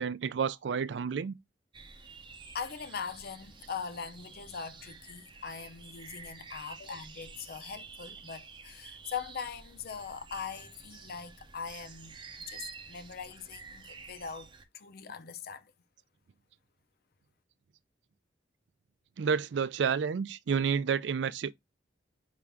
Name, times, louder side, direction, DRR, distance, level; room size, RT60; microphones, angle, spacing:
voice 1, 0.0-1.4 19.2-21.5, right 6 dB, 70° right, 0.4 m, -30 dB
sound 1, 1.7-14.6, right 4 dB, 25° right, 0.6 m, -50 dB
voice 2, 2.5-12.2 12.5-15.7, left 6 dB, 55° left, 0.6 m, -41 dB
5.5 x 2.5 x 3.4 m
head